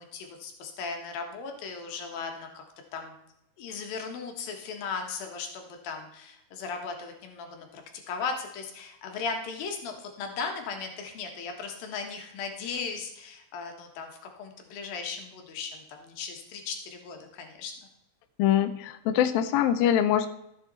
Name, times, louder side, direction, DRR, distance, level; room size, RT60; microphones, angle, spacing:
voice 1, 0.0-2.6 2.9-3.2 3.6-17.7, left 5 dB, 65° left, 3 dB, 2.9 m, -37 dB
voice 2, 18.4-20.3, left 10 dB, 90° left, 9 dB, 2.0 m, -23 dB
13.5 x 7.8 x 4.1 m, 0.78 s
omnidirectional pair, 5.0 m